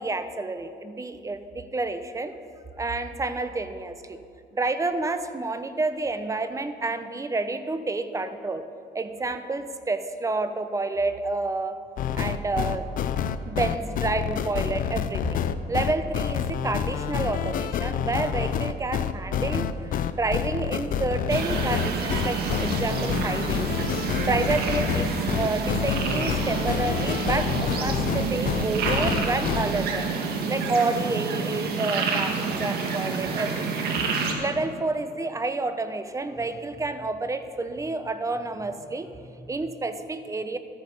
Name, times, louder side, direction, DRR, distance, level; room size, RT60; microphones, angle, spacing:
voice 1, 0.0-2.3 2.8-4.2 4.5-8.6 8.9-11.8 12.1-12.9 13.5-15.4 15.7-23.7 24.3-30.1 30.5-33.7 34.4-40.6, right 3 dB, 20° right, 10 dB, 0.7 m, -29 dB
sound 1, 12.0-29.6, left 8 dB, 55° left, 0.6 m, -28 dB
sound 2, 21.3-34.3, right 5 dB, 70° right, 1.5 m, -28 dB
13.5 x 9.4 x 5.4 m, 2.4 s
cardioid pair, 110°, 17 cm